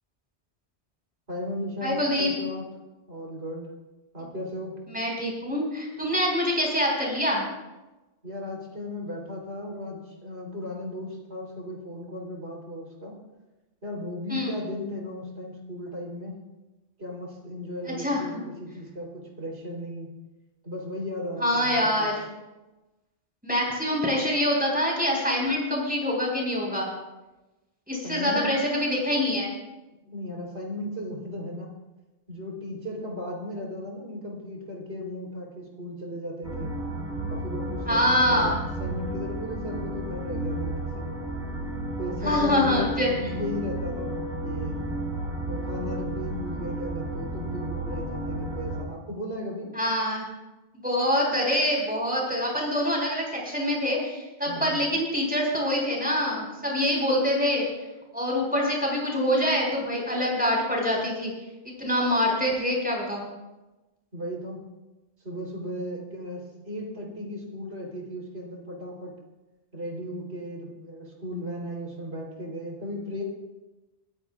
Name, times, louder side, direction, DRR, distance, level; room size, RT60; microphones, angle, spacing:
voice 1, 1.3-2.6 3.1-3.7 4.1-4.8 8.2-13.2 13.8-16.4 17.0-20.1 20.6-22.1 28.0-28.6 30.0-31.7 32.3-36.8 37.3-41.1 42.0-42.9 43.2-44.1 44.4-44.8 45.5-49.7 54.4-54.8 64.1-64.6 65.2-69.1 69.7-73.2, left 1 dB, 70° right, -1 dB, 4.0 m, -36 dB
voice 2, 1.8-2.3 4.9-7.5 14.3-14.6 17.9-18.2 21.4-22.2 23.4-26.9 27.9-29.5 37.9-38.6 42.2-43.1 49.7-50.3 50.8-57.6 58.1-61.3 61.8-63.3, left 1 dB, 10° right, -2 dB, 4.9 m, -25 dB
sound 1, 36.4-48.8, right 1 dB, 45° right, 2.9 m, -32 dB
24.0 x 15.0 x 2.4 m, 1.1 s
omnidirectional pair, 1.1 m